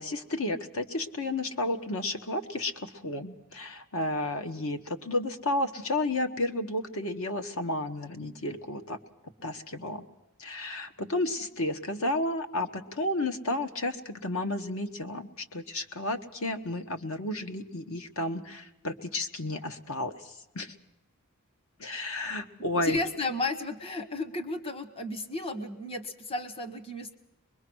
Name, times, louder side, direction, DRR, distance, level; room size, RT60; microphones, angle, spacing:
voice 1, 0.0-9.0 9.4-10.0 10.4-20.7 21.8-23.0, left 2 dB, 70° left, 7 dB, 1.4 m, -32 dB
voice 2, 22.8-27.1, left 2 dB, 25° left, 10 dB, 1.2 m, -33 dB
24.5 x 21.5 x 6.3 m, 0.96 s
head